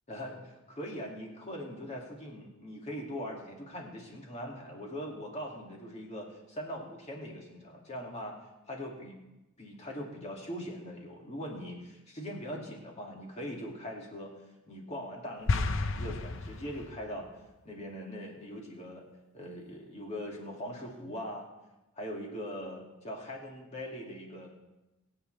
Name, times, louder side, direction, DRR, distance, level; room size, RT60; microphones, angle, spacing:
voice 1, 0.1-8.4 8.7-9.2 9.6-14.3 14.7-17.3 17.6-19.0 19.3-21.5 22.0-24.5, equal, 30° left, -1 dB, 2.5 m, -41 dB
sound 1, 15.5-17.1, left 3 dB, 60° left, 0.7 m, -31 dB
22.0 x 8.7 x 3.4 m, 0.99 s
head